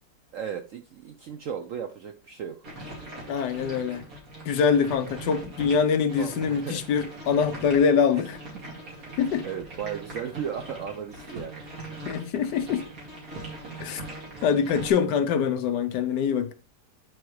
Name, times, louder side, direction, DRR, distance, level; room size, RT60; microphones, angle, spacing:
voice 1, 0.3-2.7 6.2-6.9 9.1-9.2 9.4-11.6 14.3-14.4, right 8 dB, 70° right, 0.7 m, -35 dB
sound 1, 2.6-14.9, right 2 dB, 50° right, 2.8 m, -41 dB
voice 2, 3.3-4.0 4.4-8.4 9.2-9.5 12.1-12.9 13.8-14.0 14.4-16.5, left 6 dB, 70° left, 1.3 m, -24 dB
9.2 x 4.8 x 3.2 m
omnidirectional pair, 2.0 m